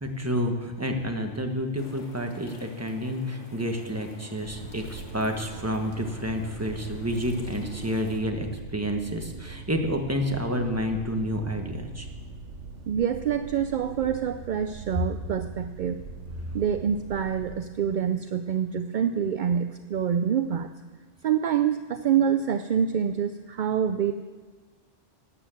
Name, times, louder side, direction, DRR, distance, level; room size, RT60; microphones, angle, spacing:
voice 1, 0.0-12.1, equal, 15° right, 4 dB, 1.3 m, -29 dB
sound 1, 1.8-8.2, left 2 dB, 80° left, 2.1 m, -48 dB
sound 2, 4.4-17.6, right 5 dB, 75° right, 1.1 m, -42 dB
voice 2, 12.9-16.0 16.5-20.7 21.2-24.1, right 8 dB, 60° right, 9 dB, 0.5 m, -26 dB
12.5 x 9.2 x 7.7 m, 1.4 s
omnidirectional pair, 1.2 m